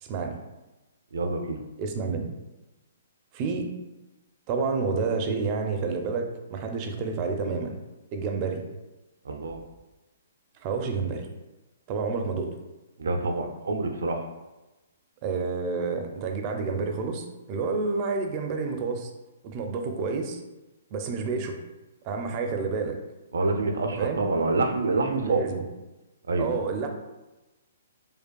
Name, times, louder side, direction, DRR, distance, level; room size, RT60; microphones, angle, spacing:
voice 1, 0.0-0.4 1.8-2.3 3.3-3.7 4.5-7.8 8.1-8.6 10.6-11.3 11.9-12.5 15.2-19.1 19.4-20.4 20.9-21.6 22.0-23.0 24.0-24.2 25.2-25.6 26.4-26.9, right 4 dB, 30° right, 4 dB, 0.5 m, -29 dB
voice 2, 1.1-1.6 9.2-9.6 13.0-14.3 23.3-25.4 26.3-26.5, right 3 dB, 85° right, 4 dB, 0.6 m, -27 dB
5.0 x 2.3 x 2.3 m, 1.1 s
hypercardioid pair, 155°, 0 cm